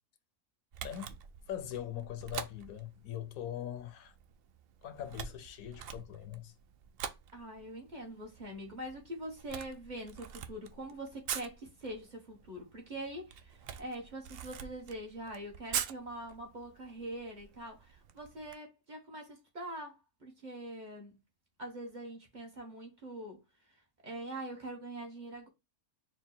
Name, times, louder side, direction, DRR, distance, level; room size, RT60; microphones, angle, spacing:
Camera, 0.7-18.6, right 8 dB, 85° right, 0.5 m, -45 dB
voice 1, 0.8-1.2 1.5-4.1 4.8-6.5, left 11 dB, 75° left, 1.1 m, -41 dB
voice 2, 7.3-21.2 21.6-23.8 24.0-25.5, right 1 dB, 35° right, 1.2 m, -44 dB
4.4 x 2.2 x 4.3 m
omnidirectional pair, 1.5 m